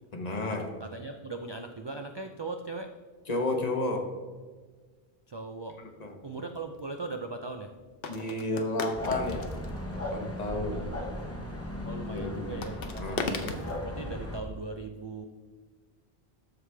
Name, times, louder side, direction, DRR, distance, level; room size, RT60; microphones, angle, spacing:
voice 1, 0.1-0.7 3.3-4.1 6.0-6.2 8.1-9.5 9.9-10.9 12.1-12.6 13.0-13.3, left 2 dB, 40° left, 3 dB, 1.1 m, -32 dB
voice 2, 0.8-3.0 5.3-5.8 6.2-7.8 10.7-10.9 11.9-15.2, right 3 dB, 45° right, 5 dB, 0.3 m, -39 dB
sound 1, 6.8-6.9 8.0-10.0 12.6-13.8, left 4 dB, 65° left, 1.0 m, -36 dB
sound 2, 9.0-14.4, left 1 dB, 15° left, 0.9 m, -37 dB
13.0 x 4.9 x 3.4 m, 1.4 s
omnidirectional pair, 1.1 m